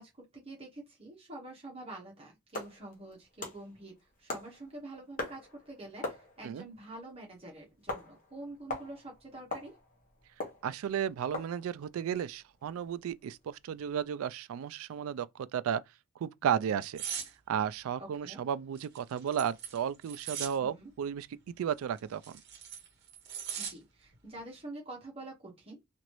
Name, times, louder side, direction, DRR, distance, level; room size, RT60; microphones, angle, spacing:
voice 1, 0.0-3.9 4.2-9.7 18.0-18.4 20.6-20.9 23.6-25.8, right 2 dB, 25° right, 1.0 m, -47 dB
sound 1, 2.5-14.0, left 2 dB, 40° left, 0.9 m, -43 dB
voice 2, 10.6-15.8 16.2-17.0 17.5-21.3 21.6-22.4, right 8 dB, 75° right, 0.3 m, -33 dB
sound 2, 17.0-17.3 18.8-20.6 22.0-23.7 24.1-24.4, right 8 dB, 50° right, 0.9 m, -39 dB
3.0 x 2.5 x 3.0 m
head